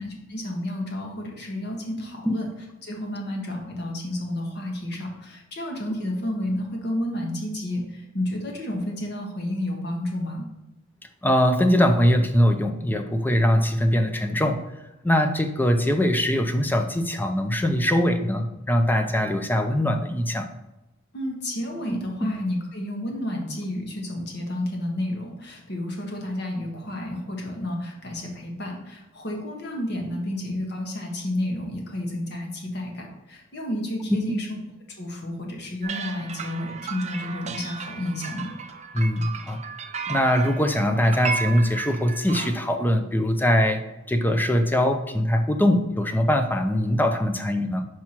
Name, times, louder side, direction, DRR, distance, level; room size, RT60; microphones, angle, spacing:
voice 1, 0.3-2.5 2.8-10.5 21.1-34.5 35.0-38.5, left 1 dB, 55° left, 1 dB, 1.4 m, -31 dB
voice 2, 11.2-14.6 15.0-20.5 38.9-39.6 40.1-43.8 44.1-47.8, equal, 10° left, 6 dB, 0.5 m, -22 dB
sound 1, 35.8-42.5, right 5 dB, 35° right, 0.6 m, -34 dB
5.9 x 4.7 x 4.4 m, 0.97 s
head